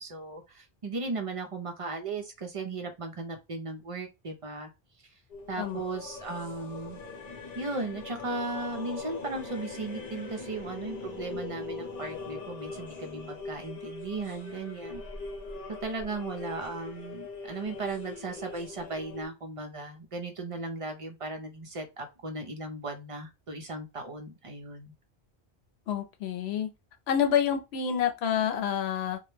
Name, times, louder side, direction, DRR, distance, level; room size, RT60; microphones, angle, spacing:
voice 1, 0.0-4.7 5.5-7.0 7.6-15.0 15.8-24.9, right 3 dB, 45° right, 0.4 m, -36 dB
sound 1, 5.3-19.3, left 3 dB, 45° left, 0.8 m, -41 dB
voice 2, 25.9-26.7 27.1-29.2, left 8 dB, 85° left, 0.8 m, -28 dB
2.2 x 2.0 x 3.1 m
omnidirectional pair, 1.1 m